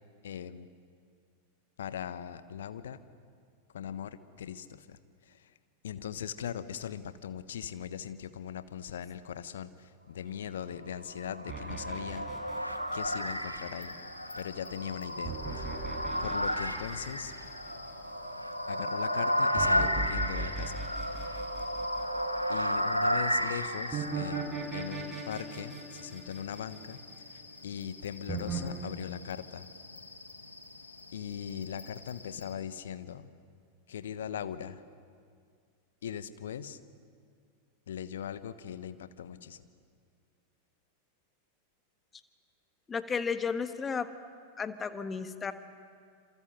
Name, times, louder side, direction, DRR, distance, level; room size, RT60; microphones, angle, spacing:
voice 1, 0.2-0.7 1.8-3.0 3.7-5.5 5.8-12.3 12.9-13.9 14.4-17.3 18.7-21.4 22.5-27.0 27.3-29.7 31.1-33.3 33.9-34.8 36.0-36.8 37.9-39.7, left 9 dB, 60° left, 13 dB, 1.2 m, -40 dB
sound 1, 11.0-24.4, equal, 90° right, 1.6 m, -33 dB
sound 2, 11.5-13.7 15.2-17.9 19.6-22.4 23.9-27.3 28.3-28.6, right 4 dB, 15° right, 6.5 m, -38 dB
sound 3, 13.0-32.5, left 3 dB, 80° left, 2.0 m, -50 dB
voice 2, 42.9-44.1 44.6-45.5, left 5 dB, 20° left, 11 dB, 1.5 m, -33 dB
27.5 x 27.5 x 7.9 m, 2.2 s
figure-of-eight pair, 90°, 0 cm